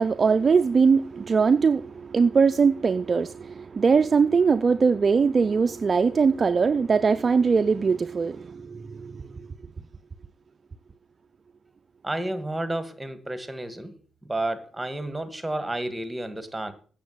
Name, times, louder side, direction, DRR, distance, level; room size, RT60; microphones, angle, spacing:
voice 1, 0.0-9.3, right 5 dB, 35° right, 0.5 m, -21 dB
voice 2, 12.0-14.0 14.2-16.7, right 1 dB, 10° right, 1.9 m, -31 dB
8.6 x 7.0 x 8.0 m
cardioid pair, 90°, 0 cm